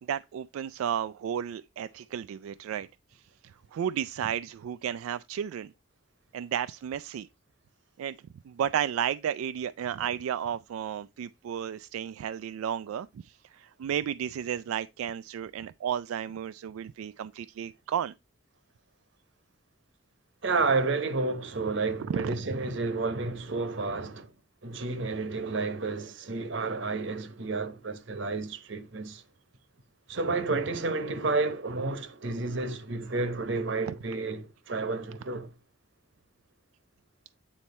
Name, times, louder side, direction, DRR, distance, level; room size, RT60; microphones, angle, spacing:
voice 1, 0.1-2.9 3.7-5.7 6.3-7.3 8.0-8.2 8.5-18.1 22.1-22.3, right 9 dB, 90° right, 0.3 m, -33 dB
voice 2, 20.4-24.3 24.6-29.2 30.1-35.5, right 3 dB, 65° right, 0.9 m, -31 dB
9.0 x 4.3 x 4.2 m
head